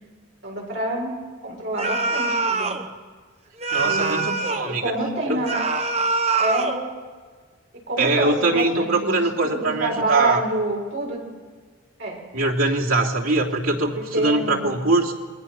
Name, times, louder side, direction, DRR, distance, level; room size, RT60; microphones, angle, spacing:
voice 1, 0.4-1.1 1.4-2.7 3.8-4.3 4.7-5.6 6.4-6.8 7.7-11.2 12.0-12.2 13.9-14.8, right 1 dB, 55° right, -1 dB, 6.8 m, -27 dB
sound 1, 1.8-2.8 3.6-4.7 5.4-6.8, right 3 dB, 30° right, 1.3 m, -24 dB
voice 2, 3.7-4.8 5.3-5.4 8.0-10.5 12.3-15.1, right 2 dB, 90° right, -2 dB, 3.2 m, -22 dB
27.5 x 21.5 x 6.1 m, 1.5 s
head